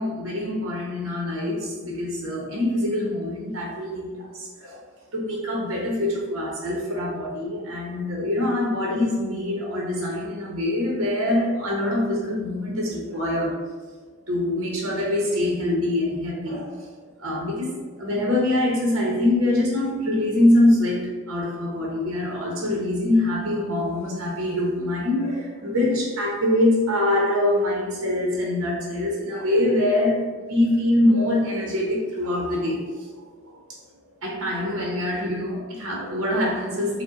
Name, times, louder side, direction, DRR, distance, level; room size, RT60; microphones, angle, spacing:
voice 1, 0.0-4.8 5.1-13.5 14.3-16.8 17.2-17.7 18.0-33.1 34.2-37.0, left 1 dB, 60° right, -2 dB, 0.9 m, -24 dB
5.0 x 2.1 x 4.0 m, 1.4 s
head